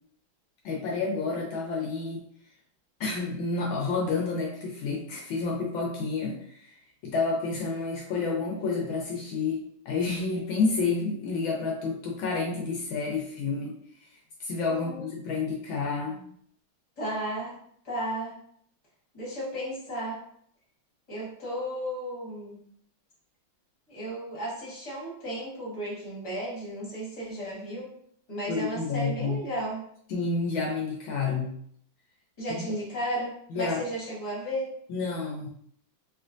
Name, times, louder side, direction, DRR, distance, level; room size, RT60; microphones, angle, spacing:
voice 1, 0.6-2.2 3.0-6.7 7.0-13.7 14.0-16.2 28.5-29.4 30.1-31.6 32.5-32.6 33.5-33.8 34.9-35.5, left 4 dB, 75° left, -1 dB, 1.3 m, -30 dB
voice 2, 17.0-17.5 17.8-18.4 19.1-20.2 21.1-22.6 23.9-27.9 28.3-29.8 32.4-34.7, right 1 dB, 25° left, -5 dB, 1.2 m, -34 dB
3.3 x 3.0 x 2.5 m, 0.65 s
omnidirectional pair, 2.3 m